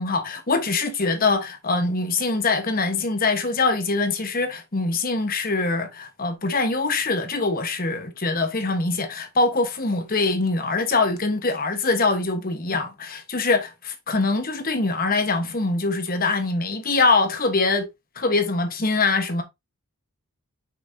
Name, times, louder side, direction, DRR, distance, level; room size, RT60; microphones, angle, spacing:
voice 1, 0.0-17.9 18.2-19.4, left 3 dB, 40° left, 1.1 m, -23 dB
6.4 x 5.6 x 2.7 m
head